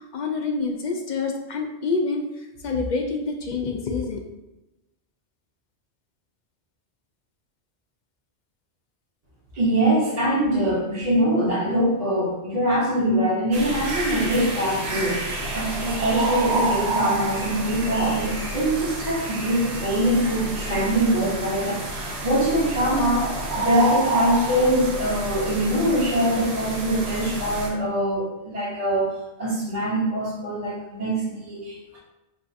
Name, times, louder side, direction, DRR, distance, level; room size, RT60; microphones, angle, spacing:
voice 1, 0.0-2.2 2.6-4.2, left 4 dB, 55° left, 2 dB, 0.5 m, -27 dB
voice 2, 9.5-32.0, right 1 dB, 40° right, -7 dB, 0.9 m, -23 dB
sound 1, 13.5-27.7, right 2 dB, 70° right, 1.0 m, -29 dB
6.1 x 2.4 x 2.5 m, 0.98 s
omnidirectional pair, 1.1 m